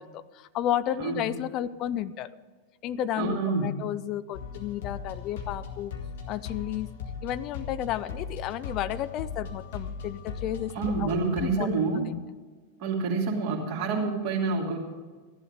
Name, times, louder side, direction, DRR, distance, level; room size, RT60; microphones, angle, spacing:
voice 1, 0.0-2.4 2.8-5.9 6.3-6.9 7.2-10.7 11.0-11.7 12.1-12.2, left 11 dB, 35° left, 14 dB, 0.5 m, -32 dB
voice 2, 3.2-3.8 10.7-12.0 12.8-14.8, right 4 dB, 45° right, 0 dB, 2.6 m, -27 dB
sound 1, 4.3-11.5, left 5 dB, 55° left, 2.1 m, -38 dB
14.5 x 11.5 x 4.8 m, 1.4 s
figure-of-eight pair, 90°, 0 cm